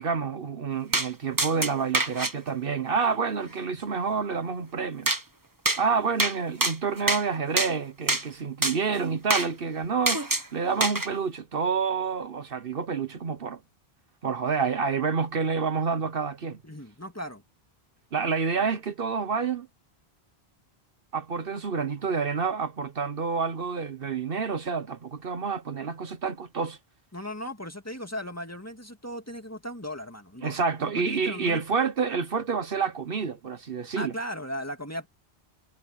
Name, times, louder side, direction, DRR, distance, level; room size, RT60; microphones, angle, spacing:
voice 1, 0.0-5.1 5.8-13.6 14.2-16.6 18.1-19.7 21.1-26.8 30.4-34.1, right 5 dB, 65° right, 1.2 m, -28 dB
sound 1, 0.9-1.1 1.4-2.3 5.1-5.2 5.7-5.8 6.2-6.4 6.6-7.2 7.6-7.7 8.1-8.2 8.6-8.8 9.3-9.5 10.1-10.5 10.8-11.1, right 2 dB, 20° right, 1.3 m, -25 dB
voice 2, 16.6-17.4 27.1-31.6 33.9-35.1, equal, 15° left, 2.2 m, -37 dB
omnidirectional pair, 1.0 m